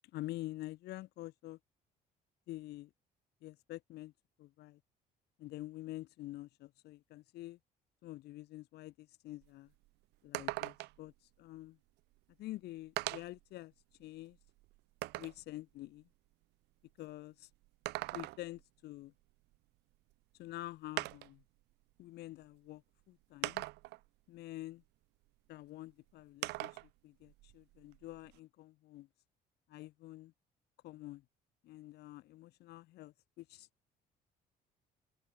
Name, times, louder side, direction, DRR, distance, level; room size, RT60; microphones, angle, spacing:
voice 1, 0.1-1.6 2.5-2.9 3.4-4.1 4.4-4.8 5.4-7.6 8.0-9.7 10.2-11.8 12.4-13.7 14.0-14.4 15.1-16.1 17.0-17.5 18.1-19.1 20.3-21.4 22.0-22.8 23.1-23.6 24.3-24.8 25.5-29.1 29.7-30.3 30.8-31.2 31.6-33.7, left 16 dB, 75° left, 1.3 m, -47 dB
sound 1, 9.4-9.5 9.8-9.9 10.3-11.1 12.2-12.3 13.0-13.4 14.0-15.4 17.6-18.6 20.1-20.2 21.0-21.4 22.4-22.5 23.4-24.1 26.4-26.9 27.3-28.4, right 20 dB, 85° right, 0.9 m, -41 dB
cardioid pair, 110°, 17 cm